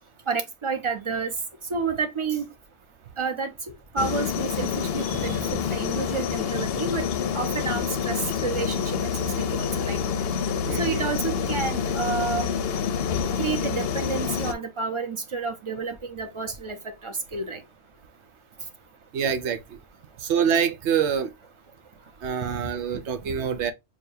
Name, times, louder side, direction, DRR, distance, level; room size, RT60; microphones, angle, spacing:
voice 1, 0.3-1.3 1.7-2.5 3.2-3.5 3.9-7.0 7.3-10.0 10.8-12.5 13.4-16.8 17.0-17.6, right 5 dB, 30° right, 0.8 m, -30 dB
sound 1, 4.0-14.5, left 7 dB, 65° left, 0.7 m, -27 dB
voice 2, 10.6-11.1 19.1-19.8 20.2-21.3 22.2-23.7, right 7 dB, 85° right, 0.9 m, -26 dB
6.4 x 2.3 x 2.6 m
omnidirectional pair, 1.1 m